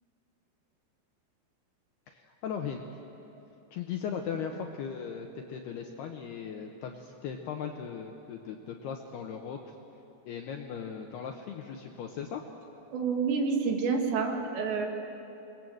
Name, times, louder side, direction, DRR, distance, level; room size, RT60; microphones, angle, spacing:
voice 1, 2.1-2.8 3.7-9.7 10.3-12.4, left 7 dB, 75° left, 3 dB, 2.5 m, -38 dB
voice 2, 12.9-14.9, right 5 dB, 65° right, 2 dB, 4.0 m, -28 dB
29.0 x 21.5 x 7.9 m, 2.9 s
omnidirectional pair, 5.8 m